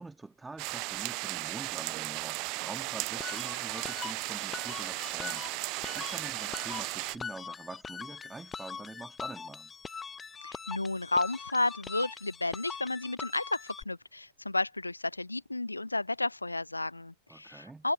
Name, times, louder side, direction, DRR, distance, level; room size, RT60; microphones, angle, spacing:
voice 1, 0.0-9.7 17.3-17.9, right 3 dB, 10° right, 2.4 m, -46 dB
sound 1, 0.6-7.2, right 28 dB, 45° right, 0.6 m, -36 dB
sound 2, 3.2-13.8, left 5 dB, 15° left, 0.8 m, -43 dB
voice 2, 10.4-17.9, left 2 dB, 85° left, 0.5 m, -32 dB
figure-of-eight pair, 90°, 0 cm